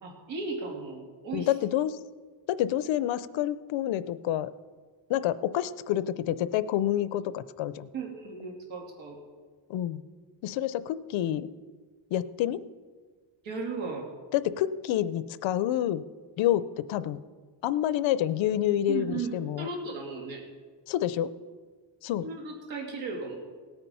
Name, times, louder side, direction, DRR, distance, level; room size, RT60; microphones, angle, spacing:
voice 1, 0.0-1.5 7.9-9.2 13.4-14.1 18.9-20.4 22.2-23.4, right 4 dB, 80° right, 1 dB, 3.1 m, -36 dB
voice 2, 1.3-2.0 2.5-4.5 5.1-7.9 9.7-10.0 10.4-11.5 12.1-12.6 14.3-16.0 16.4-17.2 17.6-19.7 20.9-21.3 22.0-22.3, left 12 dB, 80° left, 16 dB, 0.7 m, -28 dB
17.5 x 8.9 x 5.6 m, 1.5 s
cardioid pair, 170°, 45 cm